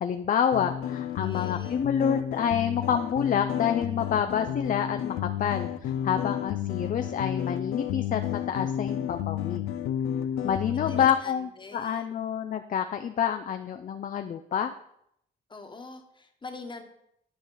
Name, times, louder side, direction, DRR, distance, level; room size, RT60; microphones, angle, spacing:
voice 1, 0.0-5.1 5.4-9.6 10.4-14.7, left 8 dB, 40° left, 7 dB, 0.5 m, -28 dB
sound 1, 0.5-11.1, left 10 dB, 90° left, 0.5 m, -31 dB
voice 2, 0.8-1.8 10.3-12.1 15.5-16.8, left 3 dB, 25° left, 5 dB, 1.3 m, -45 dB
12.0 x 4.9 x 3.9 m, 0.74 s
cardioid pair, 90°, 20 cm